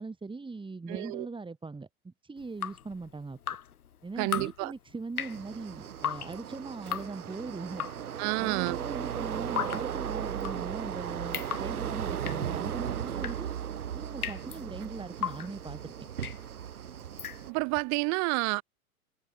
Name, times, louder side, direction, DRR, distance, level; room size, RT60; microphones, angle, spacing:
voice 1, 0.0-3.4 4.0-7.9 8.4-13.5 13.9-15.9, right 3 dB, 10° right, 4.9 m, -40 dB
voice 2, 0.9-1.3 4.2-4.7 8.2-8.8 17.5-18.6, right 30 dB, 40° right, 0.9 m, -29 dB
Drip, 2.4-17.8, left 9 dB, 80° left, 2.1 m, -39 dB
sound 1, 5.2-17.5, right 9 dB, 75° right, 3.6 m, -36 dB
hypercardioid pair, 95°, 44 cm